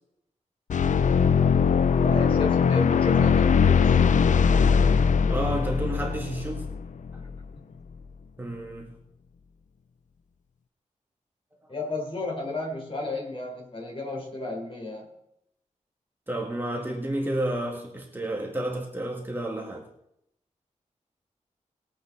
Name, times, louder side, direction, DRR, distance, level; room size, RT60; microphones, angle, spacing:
sound 1, 0.7-7.4, left 6 dB, 70° left, 0.5 m, -21 dB
voice 1, 2.0-4.2 7.2-7.7 11.7-15.1, left 2 dB, 45° left, 4.1 m, -33 dB
voice 2, 5.3-6.7 8.4-8.9 16.3-19.9, right 1 dB, 15° right, 2.0 m, -31 dB
20.5 x 8.5 x 4.1 m
wide cardioid pair, 160°, 13 cm